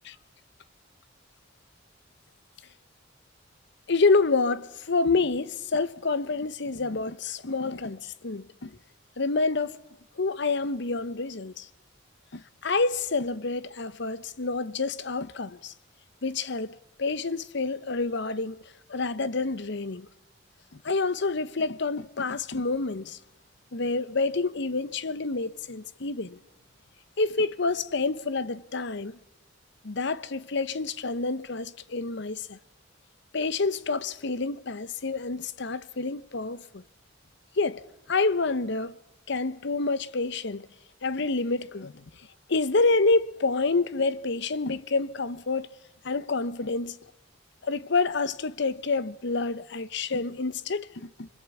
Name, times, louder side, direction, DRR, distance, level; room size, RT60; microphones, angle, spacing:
voice 1, 3.9-8.8 9.2-9.8 10.2-11.7 12.3-15.7 16.2-18.6 18.9-20.1 20.8-23.2 23.7-26.4 27.2-29.2 29.8-32.6 33.3-36.8 37.6-37.8 38.1-39.0 39.3-40.7 41.0-42.0 42.5-45.7 46.0-47.0 47.6-51.3, left 3 dB, 65° left, 0.9 m, -28 dB
26.5 x 25.0 x 8.4 m
head